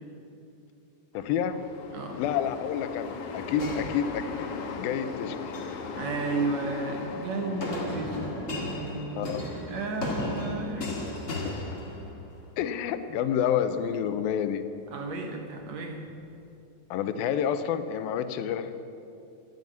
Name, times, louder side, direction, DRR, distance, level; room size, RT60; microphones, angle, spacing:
voice 1, 1.1-1.6 2.2-4.2 4.8-5.4 9.1-9.4 10.8-10.9 11.4-11.5 12.6-14.6 16.9-18.7, left 9 dB, 85° left, 10 dB, 2.6 m, -29 dB
sound 1, 1.1-9.0, left 5 dB, 65° left, 2.3 m, -38 dB
sound 2, 3.6-4.7 5.3-5.8 7.6-12.4, left 2 dB, 35° left, 1.3 m, -35 dB
voice 2, 6.0-9.3 9.7-11.0 14.9-16.0, right 3 dB, 65° right, 3 dB, 1.9 m, -33 dB
13.5 x 9.7 x 9.8 m, 2.6 s
omnidirectional pair, 4.2 m